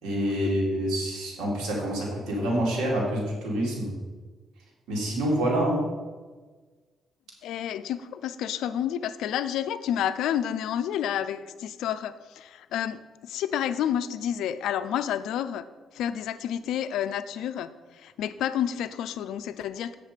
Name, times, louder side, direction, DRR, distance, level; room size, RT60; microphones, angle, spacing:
voice 1, 0.0-3.9 4.9-5.9, right 1 dB, 85° right, -3 dB, 2.8 m, -27 dB
voice 2, 7.4-15.7 15.9-20.0, left 10 dB, 85° left, 12 dB, 0.5 m, -30 dB
8.2 x 6.6 x 5.1 m, 1.4 s
cardioid pair, 90°, 0 cm